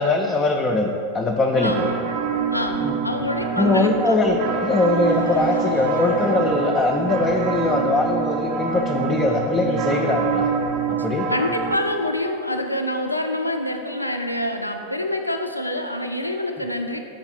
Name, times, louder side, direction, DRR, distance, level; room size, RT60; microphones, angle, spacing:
voice 1, 0.0-1.9 2.8-2.9 3.6-10.5 10.9-11.3, left 2 dB, 20° left, 0 dB, 0.4 m, -21 dB
sound 1, 1.5-11.8, right 6 dB, 40° right, 0.5 m, -26 dB
voice 2, 1.6-2.0 2.5-4.2 11.3-17.0, left 1 dB, 85° left, 5 dB, 0.4 m, -26 dB
Laughter / Crowd, 4.6-7.9 8.2-8.3 8.9-9.0 9.1-9.2, equal, 85° right, 0.6 m, -39 dB
5.5 x 3.9 x 5.5 m, 2.7 s
figure-of-eight pair, 90°, 0 cm